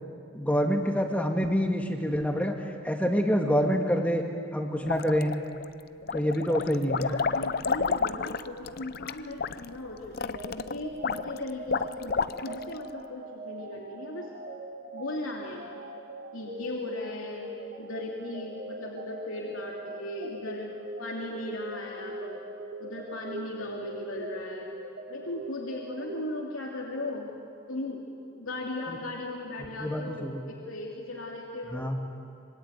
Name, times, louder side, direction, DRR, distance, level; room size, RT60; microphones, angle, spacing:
voice 1, 0.3-2.5 2.8-4.2 4.5-5.3 6.1-7.1 28.9-29.0 29.8-30.4 31.7-32.0, equal, 5° left, 3 dB, 1.9 m, -26 dB
sound 1, 4.8-5.6 6.0-12.7, left 5 dB, 45° left, 0.6 m, -30 dB
voice 2, 6.8-14.3 14.9-15.6 16.3-17.5 17.8-20.7 21.0-22.4 22.8-24.7 25.1-27.3 27.7-28.0 28.3-31.9, left 2 dB, 80° left, -1 dB, 2.9 m, -37 dB
sound 2, 10.3-26.9, right 1 dB, 50° right, 2.3 m, -42 dB
25.5 x 24.5 x 9.4 m, 2.4 s
head